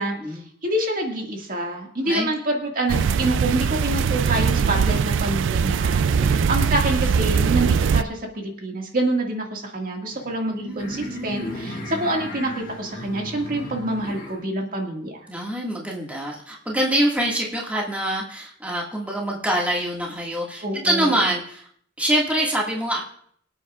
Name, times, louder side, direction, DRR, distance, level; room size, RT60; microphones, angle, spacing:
voice 1, 0.0-15.3 20.6-21.2, right 1 dB, 45° right, 1 dB, 2.0 m, -27 dB
sound 1, 2.9-8.0, right 6 dB, 75° right, 0.4 m, -21 dB
voice 2, 6.1-6.5 10.6-11.6 15.3-21.7 22.0-23.0, right 1 dB, 10° right, -3 dB, 1.9 m, -25 dB
sound 2, 10.1-14.5, left 1 dB, 45° left, 1.9 m, -36 dB
24.5 x 8.7 x 2.4 m, 0.62 s
head